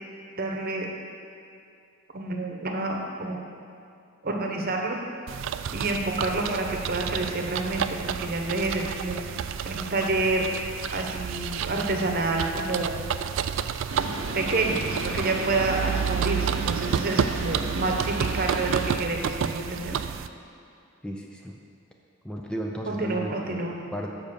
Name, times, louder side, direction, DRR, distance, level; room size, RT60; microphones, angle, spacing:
voice 1, 0.4-0.9 2.1-3.4 4.2-5.0 5.7-9.2 9.6-10.5 10.9-12.9 14.0-14.1 14.3-20.0 22.9-23.8, right 2 dB, 50° right, 1 dB, 1.0 m, -28 dB
sound 1, 5.3-20.3, right 8 dB, 70° right, 0.3 m, -31 dB
sound 2, 13.9-18.9, right 2 dB, 90° right, 0.8 m, -34 dB
voice 2, 21.0-21.6 22.2-24.1, equal, 5° left, 0 dB, 0.5 m, -35 dB
7.5 x 5.1 x 6.8 m, 2.5 s
head